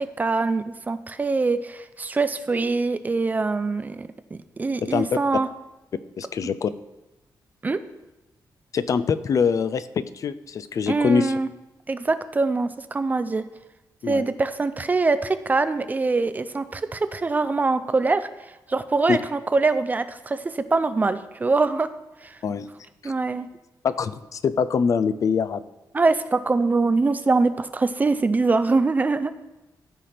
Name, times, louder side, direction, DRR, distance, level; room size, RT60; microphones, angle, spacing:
voice 1, 0.0-5.5 7.6-7.8 10.9-11.5 11.9-13.5 14.1-18.3 18.7-21.9 22.2-22.4 23.0-23.5 25.9-29.3, right 3 dB, 25° right, 12 dB, 0.4 m, -23 dB
voice 2, 6.2-6.7 8.7-11.3 14.0-14.2 19.1-19.2 22.4-22.7 23.0-23.1 23.8-25.6, left 6 dB, 50° left, 14 dB, 0.4 m, -24 dB
14.0 x 5.8 x 3.3 m, 1.0 s
wide cardioid pair, 165°, 7 cm